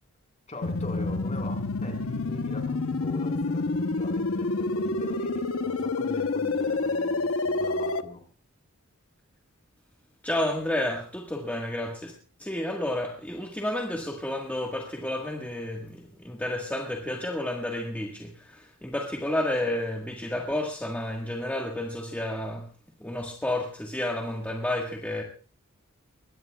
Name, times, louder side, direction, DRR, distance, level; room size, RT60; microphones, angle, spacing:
voice 1, 0.5-8.2, left 1 dB, 35° left, 4.3 m, -42 dB
sound 1, 0.6-8.0, left 3 dB, 70° left, 0.9 m, -28 dB
voice 2, 10.2-12.1 12.4-22.7 23.0-25.2, left 1 dB, 5° left, 1.5 m, -31 dB
21.5 x 18.0 x 2.3 m
head